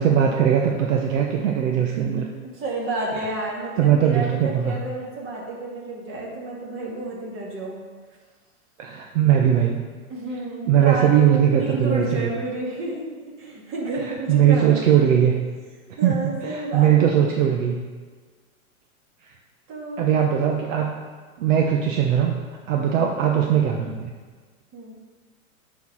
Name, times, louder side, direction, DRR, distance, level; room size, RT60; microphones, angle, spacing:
voice 1, 0.0-2.3 3.1-3.2 3.8-4.8 8.8-9.8 10.7-12.3 14.0-15.3 16.0-16.1 16.4-17.8 20.0-20.9 21.4-22.3 22.7-24.1, right 9 dB, 60° right, 1 dB, 1.0 m, -20 dB
voice 2, 2.4-7.8 10.1-13.1 13.4-15.2 16.0-17.2 19.7-20.1 24.7-24.9, right 2 dB, 30° right, -3 dB, 2.4 m, -30 dB
9.3 x 4.7 x 5.7 m, 1.5 s
hypercardioid pair, 125°, 43 cm